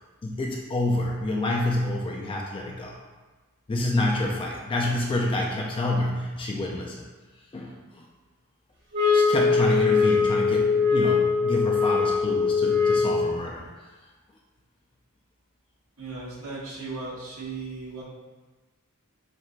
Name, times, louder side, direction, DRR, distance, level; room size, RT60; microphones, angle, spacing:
voice 1, 0.2-3.0 3.7-7.1 7.5-8.1 9.1-13.6, left 2 dB, 25° left, -1 dB, 0.3 m, -28 dB
sound 1, 8.9-13.3, left 5 dB, 55° right, 1.2 m, -22 dB
voice 2, 16.0-18.0, right 3 dB, 85° right, -5 dB, 1.1 m, -36 dB
7.3 x 2.4 x 2.2 m, 1.3 s
head